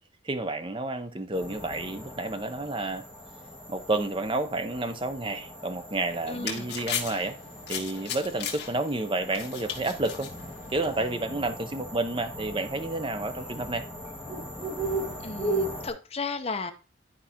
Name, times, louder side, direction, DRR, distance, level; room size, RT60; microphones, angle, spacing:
voice 1, 0.2-3.0 3.7-7.4 7.7-10.3 10.7-13.8, right 2 dB, 25° right, 0.6 m, -30 dB
sound 1, 1.3-15.9, right 1 dB, 5° right, 2.0 m, -38 dB
sound 2, 5.9-11.1, left 8 dB, 60° left, 1.4 m, -37 dB
voice 2, 6.3-6.7 15.2-16.7, left 4 dB, 30° left, 0.7 m, -34 dB
11.5 x 4.8 x 2.9 m
head